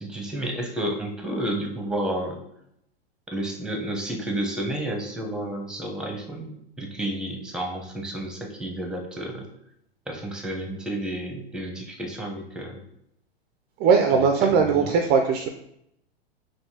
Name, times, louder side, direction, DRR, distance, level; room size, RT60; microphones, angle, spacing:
voice 1, 0.0-2.4 3.3-9.4 10.1-12.8 14.6-14.9, right 1 dB, ahead, 2 dB, 0.7 m, -31 dB
voice 2, 13.8-15.5, right 5 dB, 30° right, 4 dB, 0.4 m, -19 dB
5.4 x 2.7 x 2.8 m, 0.76 s
hypercardioid pair, 100°, 31 cm